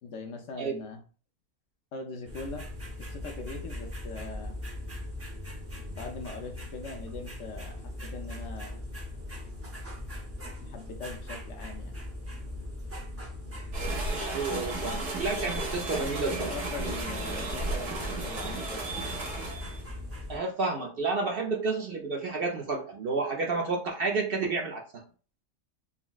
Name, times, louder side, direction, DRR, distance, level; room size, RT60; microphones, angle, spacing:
voice 1, 0.0-1.0 1.9-2.7 3.0-4.6 5.9-8.9 10.6-11.9 15.9-16.0 16.3-19.0, left 3 dB, 70° left, 4 dB, 0.9 m, -41 dB
sound 1, 2.3-20.4, left 1 dB, 20° right, 0.4 m, -40 dB
sound 2, 13.7-19.8, right 2 dB, 85° right, 1.5 m, -34 dB
voice 2, 14.2-16.5 20.3-25.0, right 3 dB, 60° right, 0 dB, 0.7 m, -30 dB
3.9 x 2.0 x 2.3 m, 0.38 s
omnidirectional pair, 1.3 m